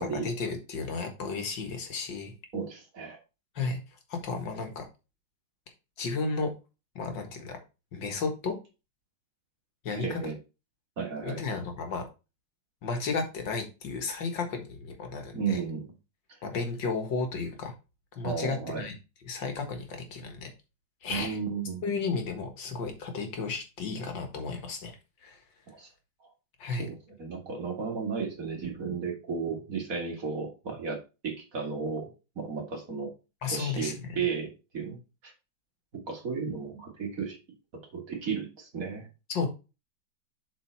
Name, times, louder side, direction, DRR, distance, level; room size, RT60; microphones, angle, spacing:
voice 1, 0.0-2.3 3.6-3.8 4.1-4.8 6.0-6.5 7.0-7.6 7.9-8.6 9.8-10.2 11.2-12.0 12.8-15.6 16.4-17.7 18.1-18.9 19.3-20.5 21.0-21.4 21.8-24.9 25.2-25.4 26.6-26.9 33.4-34.2 39.3-39.5, left 4 dB, 90° left, 5 dB, 2.3 m, -33 dB
voice 2, 2.5-3.2 10.0-10.3 11.0-11.4 15.3-15.9 16.3-16.4 18.2-18.8 21.1-21.8 25.7-25.9 26.7-33.1 33.5-35.3 35.9-37.4 37.9-39.1, right 5 dB, 50° right, 2 dB, 2.4 m, -34 dB
7.6 x 4.5 x 4.5 m, 0.29 s
omnidirectional pair, 1.9 m